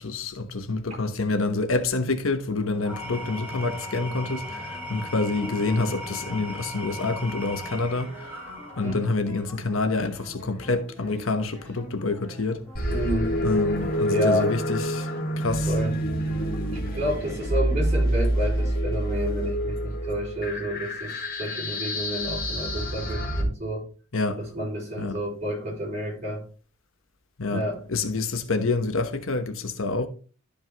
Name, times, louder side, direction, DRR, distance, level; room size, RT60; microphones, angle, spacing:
voice 1, 0.0-8.1 8.8-12.6 13.4-15.1 15.4-15.7 24.1-24.5 25.0-25.2 27.4-30.1, left 3 dB, 85° left, 1.1 m, -27 dB
Engine / Tools, 2.7-9.2, equal, 10° right, 4.4 m, -38 dB
sound 1, 2.9-19.4, left 1 dB, 10° left, 3.5 m, -46 dB
sound 2, 12.8-23.4, equal, 50° left, 1.8 m, -27 dB
voice 2, 12.9-13.4 14.1-14.5 15.7-16.0 16.7-23.9 24.4-26.5 27.5-27.8, equal, 35° right, 4.5 m, -30 dB
13.0 x 5.2 x 3.0 m
head